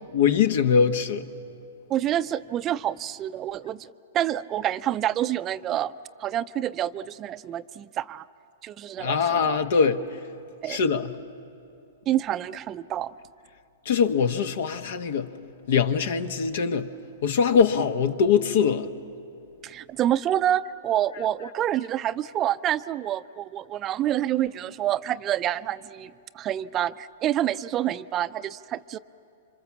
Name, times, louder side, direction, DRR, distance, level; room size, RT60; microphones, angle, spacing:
voice 1, 0.1-1.3 9.0-10.0 10.7-11.1 13.8-15.3 15.7-16.9 17.2-18.9, left 6 dB, 65° left, 1.3 m, -22 dB
voice 2, 1.9-5.9 6.2-8.2 8.6-9.6 10.6-10.8 12.1-13.1 19.6-29.0, right 12 dB, 30° right, 0.5 m, -27 dB
28.0 x 26.0 x 7.2 m
hypercardioid pair, 115°, 0 cm